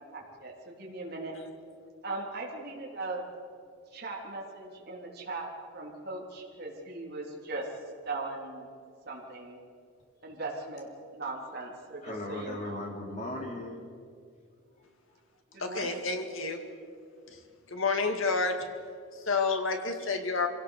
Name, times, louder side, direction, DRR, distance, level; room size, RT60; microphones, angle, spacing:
voice 1, 0.0-1.3 2.0-3.2 3.9-7.7 8.0-8.7 9.0-9.6 10.2-12.8 15.5-16.0, right 2 dB, 50° right, -2 dB, 3.6 m, -39 dB
voice 2, 12.0-13.9 14.8-14.9 17.3-17.4 20.0-20.1, left 1 dB, 35° left, 0 dB, 3.4 m, -38 dB
voice 3, 15.6-16.6 17.7-18.7 19.1-20.5, left 4 dB, 70° left, 6 dB, 2.1 m, -29 dB
25.0 x 17.0 x 6.7 m, 2.2 s
head